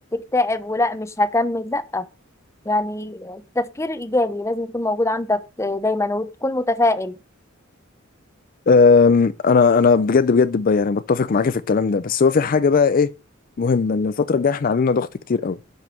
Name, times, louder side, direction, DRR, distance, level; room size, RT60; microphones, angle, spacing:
voice 1, 0.1-2.1 2.6-7.1, left 2 dB, 15° left, 0.8 m, -23 dB
voice 2, 8.7-13.1 13.6-15.6, left 5 dB, 45° left, 0.4 m, -17 dB
11.0 x 5.5 x 6.0 m
head